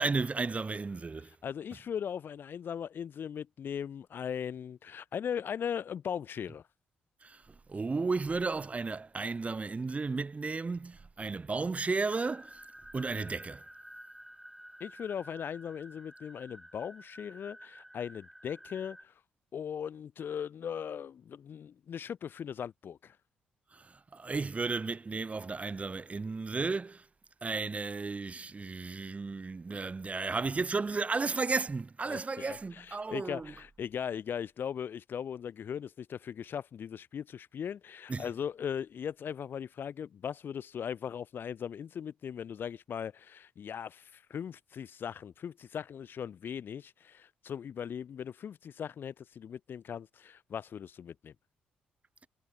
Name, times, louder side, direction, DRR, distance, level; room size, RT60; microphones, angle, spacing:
voice 1, 0.0-1.3 7.2-7.4 7.7-12.6 12.9-13.6 23.7-27.1 27.4-33.5 38.1-38.3, right 4 dB, 30° right, 1.4 m, -34 dB
voice 2, 1.4-6.6 14.8-19.1 19.5-23.2 32.1-51.3, left 8 dB, 45° left, 0.7 m, -39 dB
sound 1, 12.1-19.0, equal, 5° right, 4.6 m, -52 dB
figure-of-eight pair, 40°, 5 cm